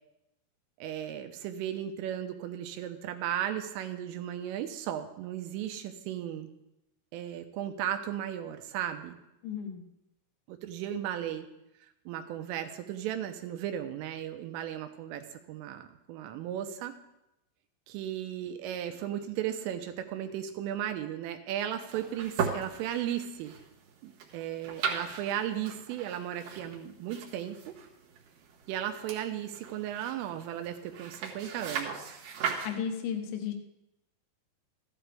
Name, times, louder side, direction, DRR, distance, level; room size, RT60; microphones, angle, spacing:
voice 1, 0.8-6.5 7.1-9.2 10.5-11.5 12.1-16.9 17.9-23.5 24.0-27.7 28.7-32.1, right 10 dB, 80° right, 7 dB, 3.2 m, -35 dB
voice 2, 9.4-9.8 32.6-33.5, left 7 dB, 75° left, 6 dB, 3.2 m, -34 dB
sound 1, 21.8-32.7, right 6 dB, 65° right, 2.5 m, -38 dB
14.5 x 12.0 x 3.4 m, 0.88 s
omnidirectional pair, 6.0 m